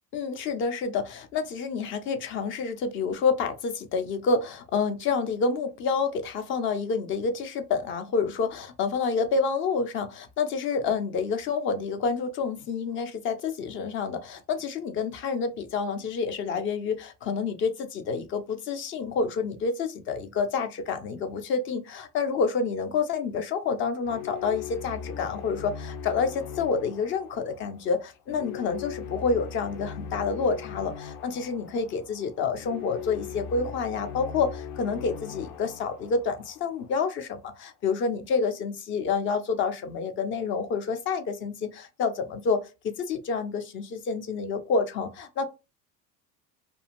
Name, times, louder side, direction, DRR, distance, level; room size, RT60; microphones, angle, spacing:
voice 1, 0.1-42.6 42.8-45.4, left 5 dB, 25° left, 0.4 m, -28 dB
sound 1, 24.0-37.1, left 7 dB, 75° left, 0.6 m, -40 dB
2.5 x 2.3 x 2.8 m
hypercardioid pair, 85°, 49 cm